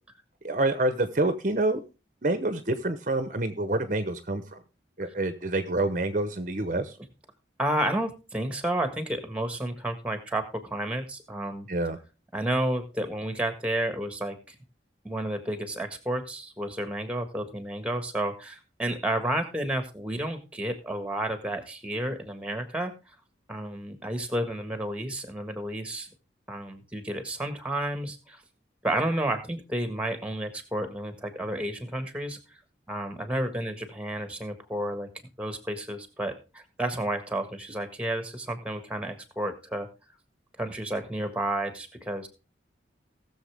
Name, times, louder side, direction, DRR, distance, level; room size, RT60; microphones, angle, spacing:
voice 1, 0.4-1.8 2.2-4.6 5.0-7.0 11.7-12.0, right 2 dB, 45° right, 10 dB, 0.9 m, -27 dB
voice 2, 7.6-11.7 12.3-14.5 15.0-22.9 23.5-26.1 26.5-28.4 28.8-32.4 32.9-35.1 35.4-39.9 40.6-42.3, right 1 dB, 5° right, 8 dB, 1.5 m, -31 dB
18.5 x 7.0 x 3.4 m, 0.30 s
head